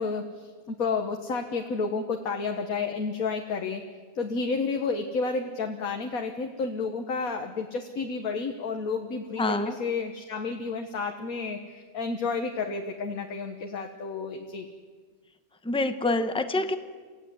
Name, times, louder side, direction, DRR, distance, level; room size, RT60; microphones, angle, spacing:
voice 1, 0.0-3.8 4.2-14.7, left 4 dB, 70° left, 4 dB, 1.8 m, -31 dB
voice 2, 9.4-9.8 15.6-16.8, left 2 dB, 5° left, 9 dB, 1.0 m, -26 dB
27.5 x 15.5 x 9.5 m, 1.5 s
omnidirectional pair, 1.6 m